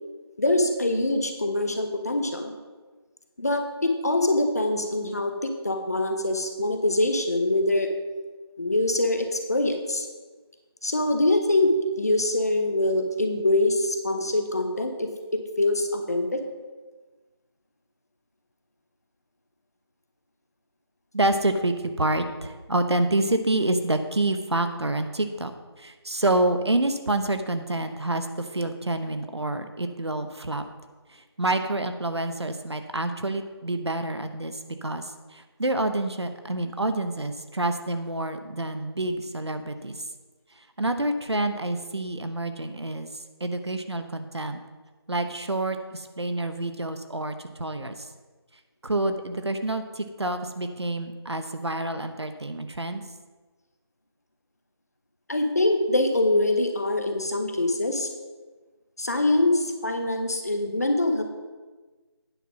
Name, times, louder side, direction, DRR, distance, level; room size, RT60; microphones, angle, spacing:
voice 1, 0.4-2.5 3.4-7.9 8.6-10.1 10.8-16.4 55.3-58.1 59.0-61.2, left 1 dB, 35° left, 5 dB, 0.8 m, -24 dB
voice 2, 21.1-30.6 31.1-40.0 40.6-44.6 45.1-48.1 48.8-53.0, right 2 dB, 75° right, 8 dB, 0.9 m, -28 dB
9.4 x 5.6 x 5.9 m, 1.3 s
figure-of-eight pair, 170°, 14 cm